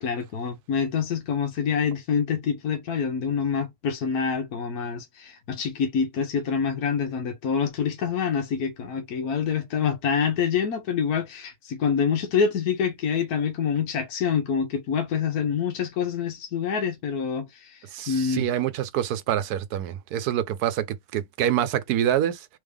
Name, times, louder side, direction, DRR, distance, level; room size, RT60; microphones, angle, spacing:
voice 1, 0.0-18.5, left 6 dB, 75° left, 1.4 m, -26 dB
voice 2, 17.9-22.5, right 11 dB, 85° right, 1.2 m, -26 dB
3.5 x 3.4 x 3.3 m
omnidirectional pair, 1.6 m